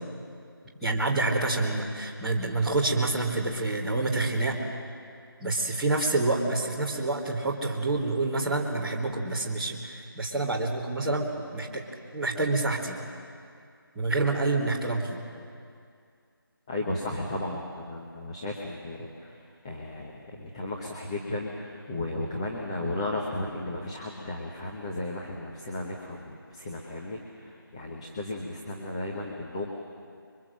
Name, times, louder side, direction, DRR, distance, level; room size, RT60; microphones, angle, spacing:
voice 1, 0.8-4.6 5.4-11.8 12.1-13.0 13.9-15.2, right 2 dB, ahead, -12 dB, 1.5 m, -27 dB
voice 2, 16.7-17.6 17.9-29.7, left 2 dB, 15° left, -2 dB, 1.1 m, -35 dB
27.0 x 23.0 x 7.7 m, 2.3 s
figure-of-eight pair, 175°, 12 cm